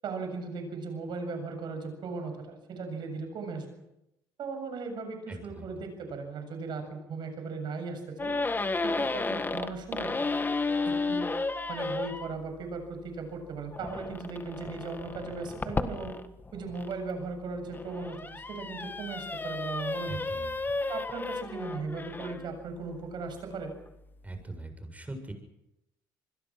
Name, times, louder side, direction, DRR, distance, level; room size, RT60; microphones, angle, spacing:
voice 1, 0.0-3.7 4.4-8.3 8.8-10.2 10.8-11.3 11.7-16.2 16.5-20.2 20.9-23.7, right 4 dB, 60° right, 6 dB, 7.4 m, -37 dB
voice 2, 5.3-5.6 20.1-20.7 24.2-25.3, right 2 dB, 15° right, 6 dB, 7.2 m, -41 dB
sound 1, 8.2-12.3 13.7-16.9 17.5-22.5, left 3 dB, 25° left, 1.8 m, -33 dB
27.5 x 21.0 x 6.1 m, 0.87 s
supercardioid pair, 70°, 9 cm